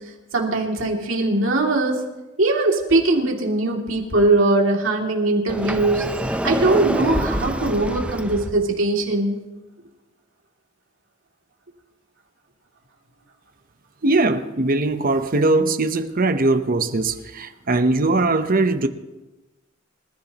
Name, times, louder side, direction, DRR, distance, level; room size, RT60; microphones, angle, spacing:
voice 1, 0.3-2.0 2.4-6.1 6.4-9.4, right 2 dB, 75° right, 2.7 m, -20 dB
Sliding door, 5.5-8.5, right 1 dB, 5° right, 0.7 m, -26 dB
voice 2, 14.0-18.9, right 2 dB, 45° right, 0.9 m, -20 dB
27.0 x 15.0 x 3.0 m
head